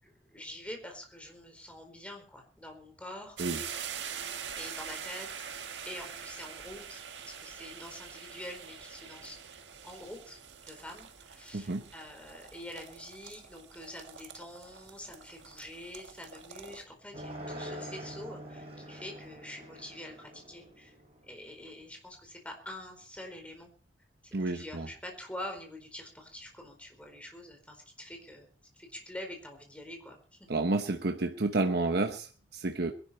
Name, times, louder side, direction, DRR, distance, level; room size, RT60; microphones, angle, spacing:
voice 1, 0.0-3.4 4.6-5.3 5.8-10.4 10.7-20.9 21.2-23.7 24.5-30.5, left 1 dB, 10° left, 3 dB, 4.4 m, -46 dB
sound 1, 3.4-16.8, right 7 dB, 90° right, 1.6 m, -44 dB
voice 2, 11.5-11.9 24.3-24.9 30.5-32.9, right 2 dB, 65° right, 5 dB, 1.0 m, -30 dB
sound 2, 17.1-21.5, equal, 35° right, 5.9 m, -44 dB
22.0 x 11.5 x 4.4 m, 0.42 s
head